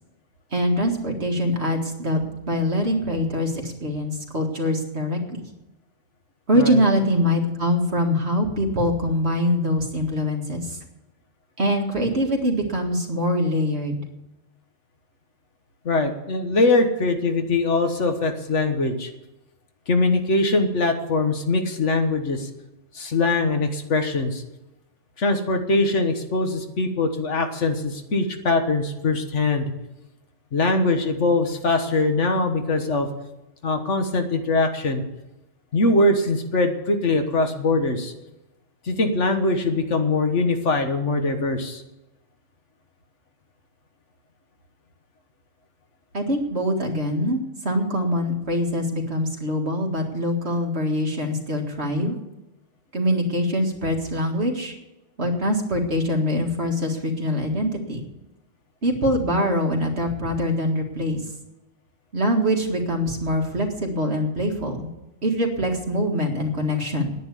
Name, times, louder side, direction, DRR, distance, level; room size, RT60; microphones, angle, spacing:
voice 1, 0.5-5.4 6.5-10.8 11.6-14.0 46.1-52.2 52.9-54.7 55.2-58.1 58.8-61.2 62.1-64.9 65.2-67.1, equal, 55° right, 1 dB, 2.2 m, -23 dB
voice 2, 15.8-19.1 19.9-22.5 22.9-24.4 25.2-29.7 30.5-33.1 33.6-35.0 35.7-38.1 38.8-41.8, left 2 dB, 70° left, 6 dB, 1.7 m, -22 dB
10.0 x 9.6 x 8.3 m, 0.98 s
omnidirectional pair, 1.3 m